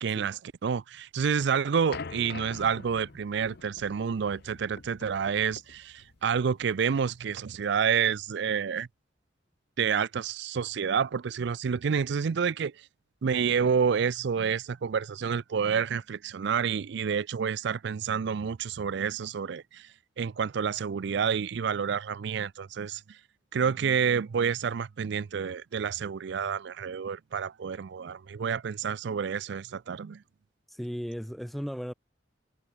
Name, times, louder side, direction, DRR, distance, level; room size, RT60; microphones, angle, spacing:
voice 1, 0.0-8.9 9.8-12.7 13.2-19.9 20.2-23.2 23.5-30.2, right 6 dB, 65° right, 0.4 m, -29 dB
sound 1, 1.9-7.3, left 4 dB, 55° left, 0.8 m, -45 dB
voice 2, 30.7-31.9, equal, ahead, 0.8 m, -36 dB
head